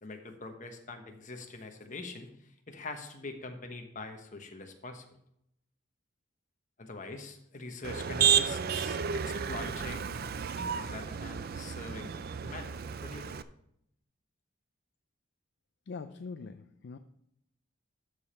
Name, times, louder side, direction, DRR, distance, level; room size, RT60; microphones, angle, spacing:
voice 1, 0.0-5.0 6.8-10.2 10.6-12.7 13.0-13.4, left 3 dB, 40° left, 5 dB, 1.1 m, -43 dB
Motor vehicle (road), 7.8-13.4, right 7 dB, 50° right, 0.4 m, -31 dB
voice 2, 15.9-17.0, left 4 dB, 55° left, 8 dB, 0.4 m, -42 dB
12.5 x 5.2 x 4.3 m, 0.76 s
head